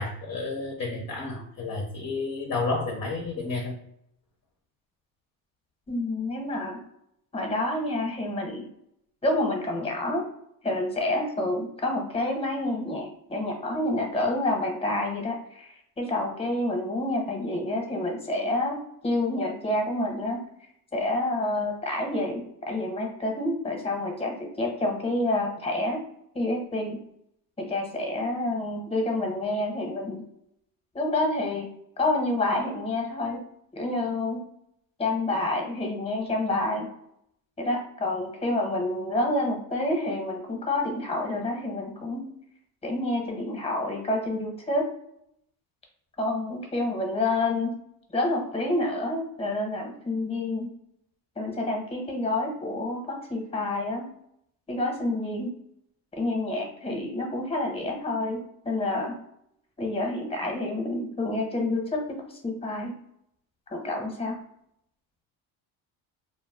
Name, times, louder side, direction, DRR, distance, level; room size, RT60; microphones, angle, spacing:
voice 1, 0.0-3.8, left 3 dB, 40° left, 0 dB, 0.6 m, -31 dB
voice 2, 5.9-6.8 7.3-8.6 9.2-10.2 10.6-18.8 19.0-20.4 20.9-26.0 26.3-27.0 27.6-30.2 30.9-31.7 32.0-33.4 33.7-34.4 35.0-36.9 37.6-42.3 42.8-44.8 46.2-47.7 48.1-50.7 51.4-54.1 54.7-55.5 56.1-58.4 58.6-59.1 59.8-63.0 63.7-64.4, left 2 dB, 15° left, 2 dB, 0.9 m, -28 dB
2.2 x 2.2 x 3.5 m, 0.74 s
supercardioid pair, 90°, 40 cm